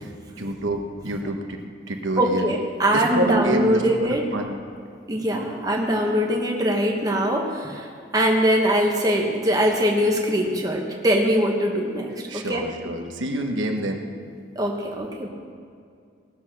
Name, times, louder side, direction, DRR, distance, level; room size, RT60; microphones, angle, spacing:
voice 1, 0.4-1.6 1.9-2.5 2.9-4.5 12.3-14.0, right 1 dB, 85° right, 3 dB, 1.3 m, -27 dB
voice 2, 2.2-4.2 5.1-7.9 8.1-12.6 14.5-15.3, equal, 20° right, 0 dB, 1.2 m, -22 dB
18.5 x 7.1 x 6.1 m, 2.3 s
head